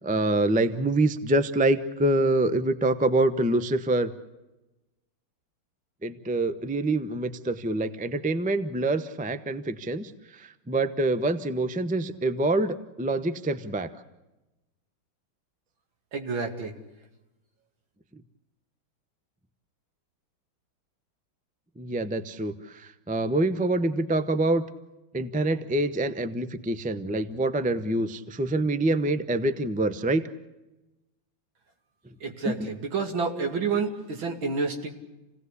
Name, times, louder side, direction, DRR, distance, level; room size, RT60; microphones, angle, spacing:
voice 1, 0.0-4.1 6.0-13.9 21.8-24.6 25.1-30.2 32.4-32.7, right 2 dB, 10° right, 11 dB, 0.3 m, -26 dB
voice 2, 16.1-16.7 32.2-34.9, right 4 dB, 70° right, 4 dB, 3.2 m, -29 dB
28.5 x 18.0 x 8.3 m, 1.0 s
omnidirectional pair, 2.2 m